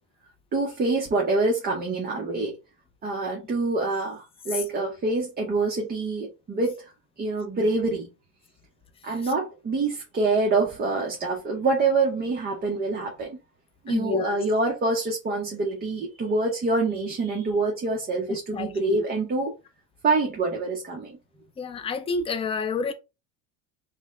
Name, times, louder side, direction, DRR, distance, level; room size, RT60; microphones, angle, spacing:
voice 1, 0.5-2.6 3.0-6.8 7.2-8.1 9.0-13.4 13.8-19.5 20.0-21.2, right 3 dB, 25° right, 0.8 m, -26 dB
voice 2, 13.9-14.4 18.3-19.0 21.6-22.9, left 5 dB, 15° left, 0.4 m, -29 dB
4.1 x 2.1 x 3.6 m
cardioid pair, 135°, 40 cm